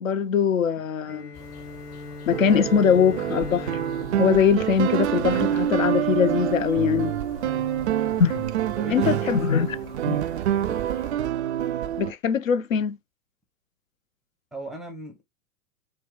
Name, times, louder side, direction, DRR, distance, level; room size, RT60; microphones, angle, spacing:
voice 1, 0.0-1.3 2.3-3.8 4.2-7.1 8.2-8.4 8.9-9.7 10.1-10.2 12.0-13.0, left 7 dB, 60° left, 0.7 m, -22 dB
Bowed string instrument, 1.0-5.8, left 2 dB, 90° left, 1.7 m, -40 dB
sound 1, 1.3-11.1, left 9 dB, 40° left, 1.5 m, -47 dB
sound 2, 2.3-12.1, right 11 dB, 50° right, 0.5 m, -26 dB
voice 2, 8.7-10.3 10.7-10.9 14.5-15.2, equal, ahead, 0.6 m, -39 dB
4.6 x 2.2 x 3.7 m
figure-of-eight pair, 105°, 45 cm